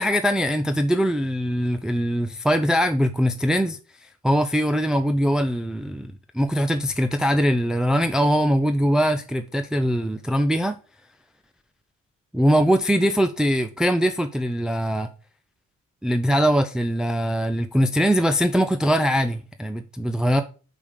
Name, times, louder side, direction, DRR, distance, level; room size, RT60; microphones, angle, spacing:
voice 1, 0.0-10.8 12.3-15.1 16.0-20.4, equal, ahead, 0.5 m, -22 dB
5.2 x 5.2 x 6.4 m
cardioid pair, 90°, 30 cm